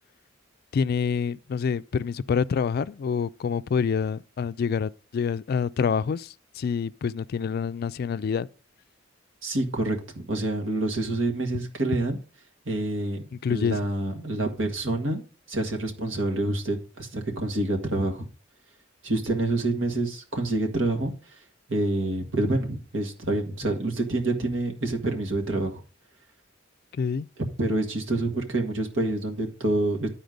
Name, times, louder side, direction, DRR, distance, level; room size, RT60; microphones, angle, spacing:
voice 1, 0.7-8.5 13.3-13.8 27.0-27.3, left 6 dB, 50° left, 0.3 m, -27 dB
voice 2, 9.4-12.2 12.7-13.2 13.5-15.2 15.5-18.3 19.0-21.1 21.7-25.8 27.6-30.1, right 2 dB, 85° right, 1.7 m, -27 dB
11.0 x 4.3 x 5.1 m
head